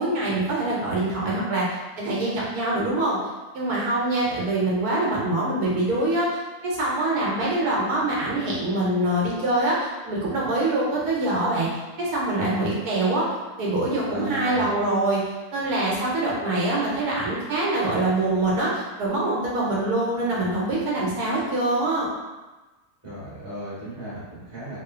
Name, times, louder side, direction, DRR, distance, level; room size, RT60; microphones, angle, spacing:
voice 1, 0.0-1.7 2.0-3.2 3.5-11.7 12.0-13.3 13.6-15.2 15.5-22.1, right 2 dB, 80° right, -5 dB, 1.1 m, -24 dB
voice 2, 14.1-14.7 23.0-24.8, right 1 dB, 10° right, -11 dB, 1.1 m, -35 dB
3.0 x 2.1 x 2.3 m, 1.2 s
omnidirectional pair, 1.6 m